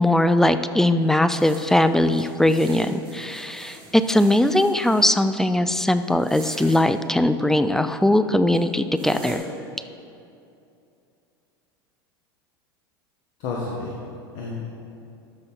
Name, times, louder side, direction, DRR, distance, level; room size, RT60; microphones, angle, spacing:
voice 1, 0.0-9.4, left 1 dB, 5° left, 11 dB, 0.4 m, -20 dB
sound 1, 1.4-5.1 6.1-6.8 8.0-8.1 8.5-8.6 9.0-9.4, right 4 dB, 40° right, 2.1 m, -43 dB
voice 2, 13.4-14.7, left 3 dB, 55° left, -3 dB, 1.4 m, -31 dB
12.5 x 5.7 x 3.8 m, 2.6 s
hypercardioid pair, 85°, 12 cm